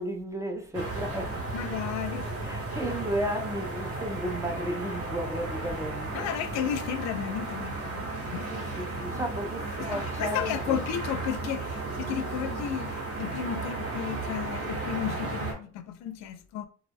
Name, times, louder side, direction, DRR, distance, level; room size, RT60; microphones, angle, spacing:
voice 1, 0.0-1.4 2.4-6.3 8.5-10.8, equal, 10° right, 0.4 m, -34 dB
sound 1, 0.7-15.5, right 2 dB, 50° right, 1.2 m, -34 dB
voice 2, 1.5-2.6 6.1-8.4 8.9-9.0 9.8-16.7, left 9 dB, 65° left, 0.4 m, -33 dB
2.3 x 2.0 x 3.3 m
cardioid pair, 100°, 29 cm